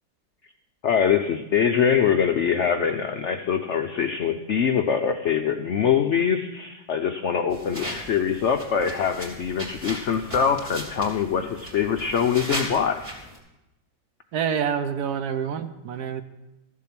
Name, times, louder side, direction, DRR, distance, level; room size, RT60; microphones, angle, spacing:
voice 1, 0.8-13.1, left 7 dB, 75° left, 7 dB, 0.6 m, -23 dB
sound 1, 7.5-13.4, equal, 20° right, 2.9 m, -37 dB
voice 2, 14.3-16.2, right 7 dB, 70° right, 10 dB, 1.1 m, -27 dB
13.5 x 7.5 x 5.9 m, 0.96 s
omnidirectional pair, 2.0 m